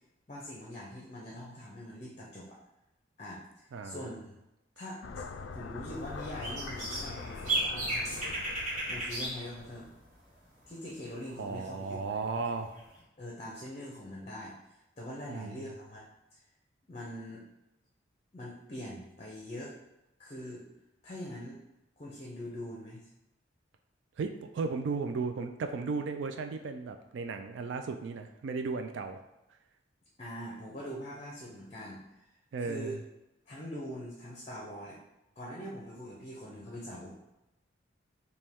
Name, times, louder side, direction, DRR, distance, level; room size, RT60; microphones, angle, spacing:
voice 1, 0.3-2.6 3.2-4.4 4.8-5.2 5.5-8.4 8.9-9.9 10.7-12.8 13.2-14.6 15.0-16.1 16.3-16.4 16.9-17.4 18.3-19.7 20.2-20.6 21.0-21.6 22.0-23.1 30.2-32.0 32.6-33.0 33.5-35.0 35.4-37.1, equal, 35° left, -3 dB, 0.6 m, -43 dB
sound 1, 5.0-10.0, left 4 dB, 75° left, 0.3 m, -44 dB
sound 2, 6.1-9.4 9.7-9.9 12.8-12.9, right 1 dB, 40° right, 1.3 m, -34 dB
voice 2, 11.4-12.7 15.3-15.7 24.2-29.2 32.5-33.0, right 4 dB, 70° right, 6 dB, 0.3 m, -35 dB
5.2 x 2.2 x 3.5 m, 0.94 s
head